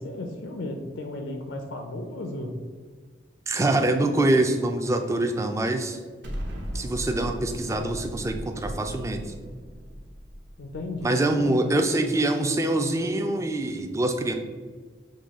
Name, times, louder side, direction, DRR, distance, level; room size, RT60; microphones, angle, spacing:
voice 1, 0.0-2.5 10.6-11.7, left 2 dB, 85° left, 4 dB, 0.5 m, -34 dB
voice 2, 3.5-6.0 6.7-9.2 11.0-14.3, right 2 dB, 15° right, 5 dB, 0.3 m, -24 dB
Explosion, 6.2-11.4, equal, 65° right, 0.8 m, -37 dB
6.3 x 2.2 x 3.5 m, 1.5 s
head